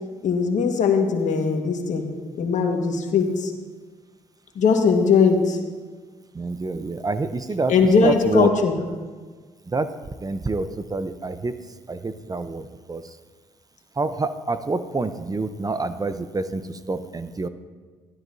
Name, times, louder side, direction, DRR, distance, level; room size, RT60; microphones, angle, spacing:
voice 1, 0.2-2.0 2.4-3.5 4.5-5.6 7.7-8.7, left 5 dB, 65° left, 3 dB, 1.6 m, -20 dB
voice 2, 6.3-7.7 8.0-8.5 9.7-9.9 10.2-11.5 11.9-13.0 14.0-17.5, right 3 dB, 25° right, 11 dB, 0.7 m, -27 dB
15.0 x 12.5 x 2.7 m, 1.5 s
supercardioid pair, 55°, 14 cm